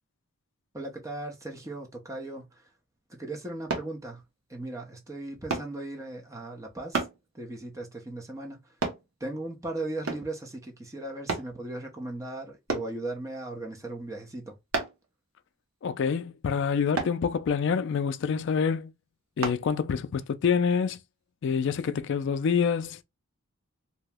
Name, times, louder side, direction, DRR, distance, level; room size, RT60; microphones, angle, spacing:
voice 1, 0.7-2.6 3.1-4.2 4.5-7.1 7.3-8.7 9.2-14.6, right 2 dB, 15° right, 0.6 m, -37 dB
sound 1, 3.7-3.9 5.5-5.7 6.9-7.2 8.8-9.0 10.1-10.3 11.3-11.5 12.7-12.9 14.7-15.0 16.9-17.2 19.4-19.6 20.2-20.3, right 3 dB, 75° right, 0.8 m, -30 dB
voice 2, 15.8-18.9 19.4-21.0 21.4-23.0, left 6 dB, 55° left, 0.3 m, -26 dB
2.8 x 2.1 x 3.3 m
head